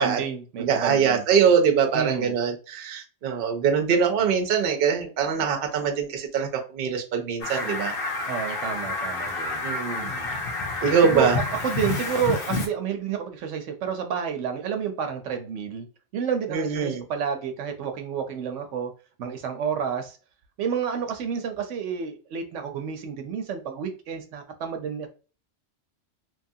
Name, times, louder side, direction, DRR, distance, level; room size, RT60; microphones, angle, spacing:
voice 1, 0.0-1.5 1.9-2.4 8.3-9.7 10.0-10.4 11.0-15.9 16.1-18.9 19.2-20.2 20.6-25.1, right 7 dB, 85° right, 0.9 m, -30 dB
voice 2, 0.6-8.0 9.6-10.1 10.8-11.4 16.5-17.0, right 6 dB, 60° right, 0.7 m, -23 dB
Fowl, 7.4-12.7, left 3 dB, 55° left, 0.9 m, -29 dB
2.9 x 2.3 x 2.7 m
omnidirectional pair, 1.2 m